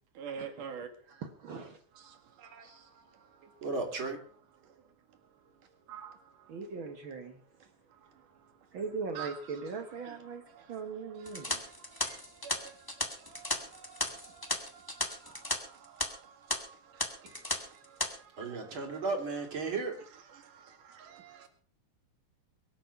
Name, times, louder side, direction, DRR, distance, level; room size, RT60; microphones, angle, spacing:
voice 1, 0.2-0.9 2.0-3.7 4.6-4.8 5.9-6.5 7.9-8.3 9.2-9.6 10.0-10.2 10.5-19.1 20.3-21.5, right 7 dB, 85° right, 3.5 m, -50 dB
voice 2, 1.1-1.8 2.6-2.8 6.5-7.4 8.7-11.6, right 4 dB, 55° right, 1.5 m, -40 dB
voice 3, 3.6-4.2 18.4-20.0, right 3 dB, 40° right, 3.6 m, -34 dB
sound 1, 11.3-15.6 15.8-16.0 16.5-16.6 17.0-17.6 17.8-18.1, left 1 dB, 15° left, 0.8 m, -34 dB
23.0 x 8.0 x 5.7 m
omnidirectional pair, 3.6 m